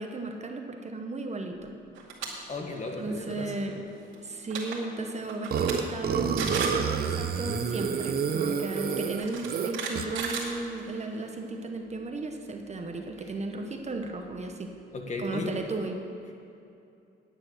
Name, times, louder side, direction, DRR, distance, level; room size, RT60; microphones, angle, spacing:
voice 1, 0.0-1.7 3.0-3.8 4.2-14.7 15.2-16.0, right 2 dB, 35° right, 4 dB, 1.0 m, -35 dB
sound 1, 1.5-15.6, right 6 dB, 65° left, 3.1 m, -54 dB
sound 2, 1.9-2.3 2.7-2.9 4.1-4.2 4.4-4.8 5.3-5.7 6.1-6.2 6.4-6.8 8.0-8.1 9.2-11.0, right 6 dB, 85° right, 2.3 m, -34 dB
voice 2, 2.5-3.7 14.9-15.5, left 2 dB, 35° left, 2 dB, 1.7 m, -35 dB
Burping eructation, 5.5-10.3, right 6 dB, 50° right, 0.7 m, -29 dB
9.9 x 8.5 x 6.6 m, 2.7 s
cardioid pair, 90°, 20 cm